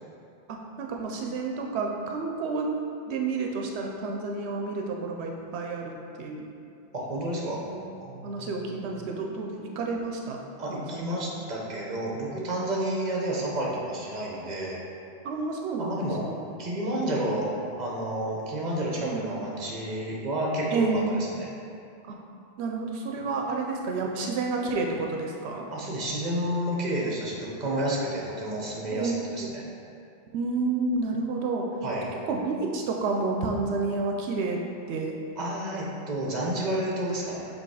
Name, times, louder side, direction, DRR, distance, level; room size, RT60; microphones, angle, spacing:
voice 1, 0.5-2.7 3.1-6.5 7.6-7.8 8.2-10.4 10.7-11.1 15.2-16.4 19.0-19.5 20.7-21.2 22.1-22.2 22.6-25.6 28.9-29.5 30.3-31.7 32.3-34.6 34.9-35.2, right 3 dB, 85° right, 1 dB, 0.9 m, -30 dB
voice 2, 6.9-7.6 8.0-8.6 10.6-14.8 15.8-16.2 16.6-17.5 17.8-21.5 25.7-29.6 31.8-32.1 35.4-37.5, right 1 dB, 45° right, -3 dB, 1.0 m, -30 dB
6.8 x 2.9 x 4.8 m, 2.6 s
omnidirectional pair, 1.1 m